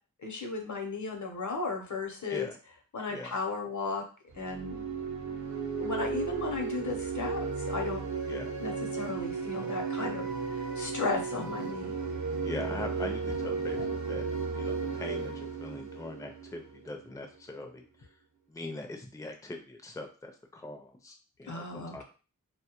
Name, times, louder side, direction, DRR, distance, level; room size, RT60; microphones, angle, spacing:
voice 1, 0.2-2.5 2.9-4.0 4.3-4.8 5.8-8.0 8.6-12.0 13.8-13.9 21.5-22.0, left 3 dB, 60° left, 3 dB, 0.7 m, -35 dB
sound 1, 4.3-17.0, right 5 dB, 60° right, 0.6 m, -34 dB
voice 2, 12.4-14.2 14.5-17.8 18.5-22.0, left 2 dB, 10° left, 3 dB, 0.4 m, -41 dB
2.2 x 2.1 x 2.9 m, 0.36 s
wide cardioid pair, 45°, 33 cm